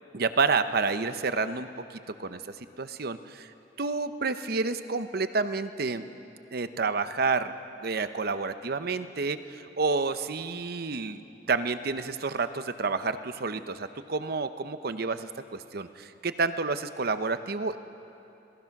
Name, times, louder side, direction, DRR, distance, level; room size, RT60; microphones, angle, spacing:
voice 1, 0.1-1.7 2.2-2.4 2.8-3.5 3.8-6.0 6.5-7.5 7.8-11.2 11.5-17.8, right 4 dB, 60° right, 11 dB, 0.8 m, -29 dB
27.0 x 18.0 x 6.0 m, 2.9 s
head